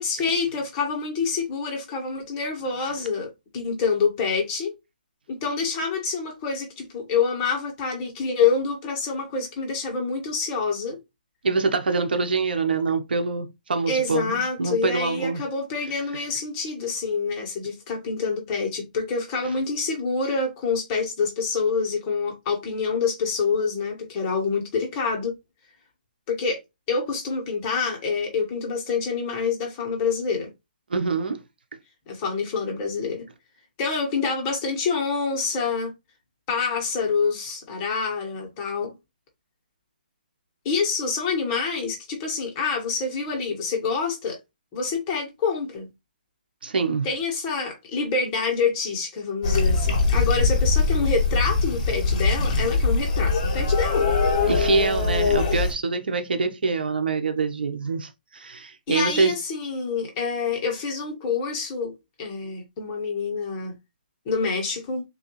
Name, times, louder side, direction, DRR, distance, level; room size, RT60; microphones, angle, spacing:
voice 1, 0.0-4.7 5.3-11.0 13.9-25.3 26.3-26.6 26.9-30.5 32.1-33.2 33.8-35.9 36.5-38.9 40.6-44.4 44.7-45.9 47.0-54.2 58.9-61.9 62.2-63.7 64.2-65.0, left 5 dB, 25° left, 1.5 m, -26 dB
voice 2, 11.4-15.4 30.9-31.4 46.6-47.1 54.4-59.3, right 4 dB, 80° right, 1.0 m, -25 dB
sound 1, 49.4-55.7, left 3 dB, 40° left, 1.5 m, -22 dB
3.9 x 3.0 x 3.1 m
hypercardioid pair, 160°, 5 cm